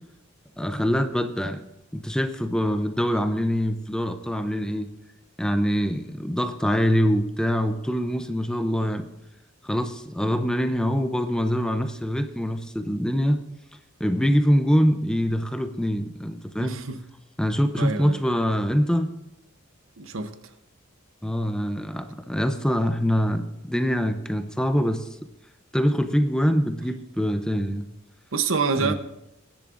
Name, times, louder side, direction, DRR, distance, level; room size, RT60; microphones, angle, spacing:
voice 1, 0.6-1.6 1.9-4.9 5.4-9.1 9.6-13.4 14.0-16.8 17.4-19.1 21.2-25.1 25.7-27.9 28.8-28.9, equal, 5° left, 0.5 m, -24 dB
voice 2, 16.6-17.0 17.8-18.2 20.0-20.3 28.3-28.9, right 5 dB, 75° right, 0.9 m, -26 dB
22.0 x 10.5 x 2.5 m
head